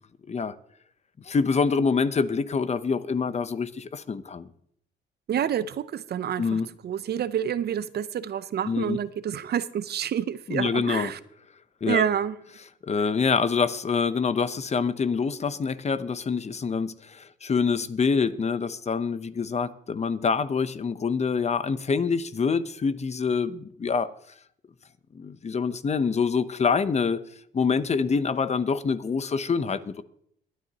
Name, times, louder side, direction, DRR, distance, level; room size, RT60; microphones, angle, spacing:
voice 1, 1.2-4.5 6.4-6.7 8.6-9.0 10.5-11.1 11.8-12.0 12.8-24.1 25.1-27.2 27.5-30.0, left 5 dB, 35° left, 0.7 m, -26 dB
voice 2, 5.3-11.2 11.8-12.3, right 9 dB, 55° right, 0.6 m, -28 dB
21.5 x 9.4 x 2.9 m
cardioid pair, 90°, 20 cm